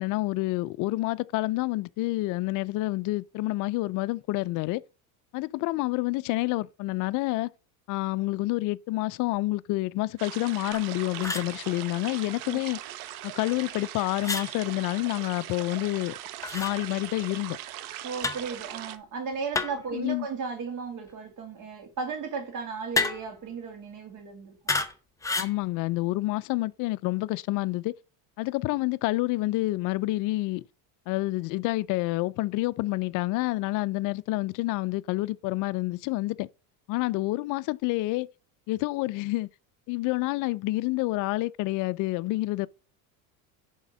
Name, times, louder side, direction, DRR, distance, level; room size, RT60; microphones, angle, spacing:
voice 1, 0.0-4.8 5.3-7.5 7.9-12.8 13.2-16.1 16.5-17.6 19.9-20.3 25.4-27.9 28.4-30.6 31.1-36.5 36.9-38.3 38.7-39.5 39.9-42.7, left 20 dB, 50° left, 0.4 m, -28 dB
sound 1, 10.2-19.0, right 13 dB, 85° right, 1.0 m, -40 dB
sound 2, 10.7-10.9 11.2-11.5 14.2-14.5 16.4-16.7 18.2-18.5 19.5-19.9 22.9-23.4 24.7-24.9 25.2-25.6, left 3 dB, 10° left, 0.7 m, -29 dB
voice 2, 18.0-24.6, right 5 dB, 45° right, 2.2 m, -35 dB
10.5 x 3.6 x 5.2 m
supercardioid pair, 125°, 42 cm